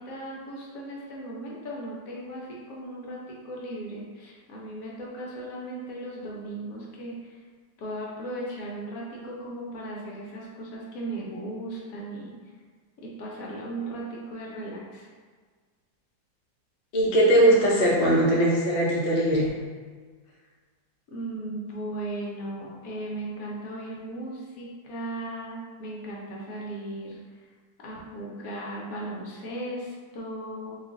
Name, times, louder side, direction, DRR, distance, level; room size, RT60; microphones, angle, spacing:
voice 1, 0.0-7.4 7.8-12.3 13.0-15.1 21.1-27.4 27.8-30.7, right 1 dB, 65° left, -4 dB, 0.9 m, -37 dB
voice 2, 16.9-19.5, right 1 dB, 90° left, -5 dB, 0.4 m, -20 dB
2.9 x 2.4 x 3.6 m, 1.5 s
omnidirectional pair, 2.0 m